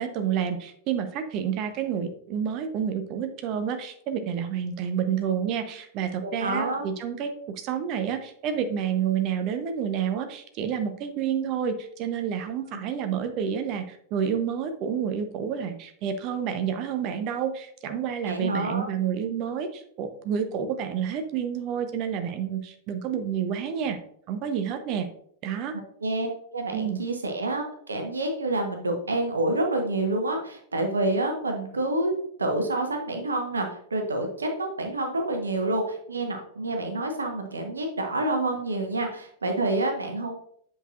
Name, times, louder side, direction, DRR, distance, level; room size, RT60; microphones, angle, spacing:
voice 1, 0.0-24.0 24.3-25.1 25.4-25.7 26.7-27.0, right 8 dB, 40° right, 8 dB, 0.8 m, -29 dB
voice 2, 6.2-6.8 12.7-12.8 18.2-18.9 26.0-32.1 32.4-40.3, right 2 dB, 75° right, 3 dB, 1.2 m, -28 dB
8.2 x 5.7 x 2.5 m, 0.64 s
figure-of-eight pair, 90°, 0 cm